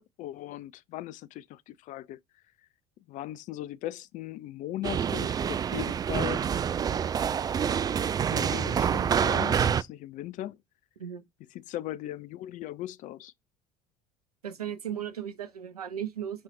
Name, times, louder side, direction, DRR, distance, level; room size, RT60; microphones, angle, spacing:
voice 1, 0.2-2.2 3.1-6.4 8.3-10.6 11.5-13.3, left 14 dB, 40° left, 0.5 m, -38 dB
sound 1, 4.8-9.8, right 8 dB, 20° right, 0.4 m, -27 dB
voice 2, 14.4-16.4, right 9 dB, 80° right, 0.9 m, -36 dB
6.3 x 5.6 x 3.1 m
figure-of-eight pair, 65°, 19 cm